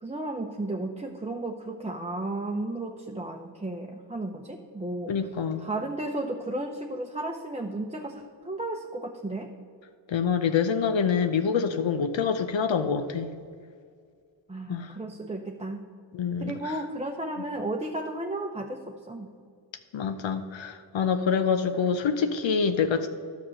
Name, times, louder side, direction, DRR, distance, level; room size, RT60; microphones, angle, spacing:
voice 1, 0.0-5.1 5.6-9.5 14.5-15.8 16.4-19.3, right 2 dB, 15° right, 2 dB, 0.8 m, -34 dB
voice 2, 5.1-5.7 10.1-13.3 14.7-14.9 16.1-16.7 19.9-23.1, left 6 dB, 70° left, 9 dB, 0.8 m, -26 dB
11.0 x 6.2 x 6.5 m, 2.1 s
cardioid pair, 45°, 48 cm